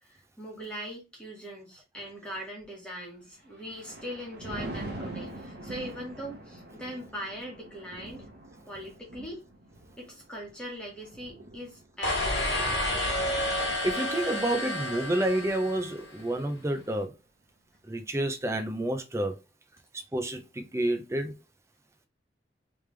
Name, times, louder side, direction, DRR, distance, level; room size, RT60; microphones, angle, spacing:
voice 1, 0.0-8.2 8.6-9.4 10.0-12.8, equal, 5° left, 1.5 m, -41 dB
Thunder, 3.3-14.8 15.3-15.6, right 1 dB, 70° right, 1.1 m, -44 dB
sound 1, 12.0-16.2, left 1 dB, 80° left, 1.6 m, -30 dB
voice 2, 13.8-17.1 17.9-19.4 20.1-21.3, right 1 dB, 15° right, 0.5 m, -29 dB
3.4 x 3.3 x 3.2 m
head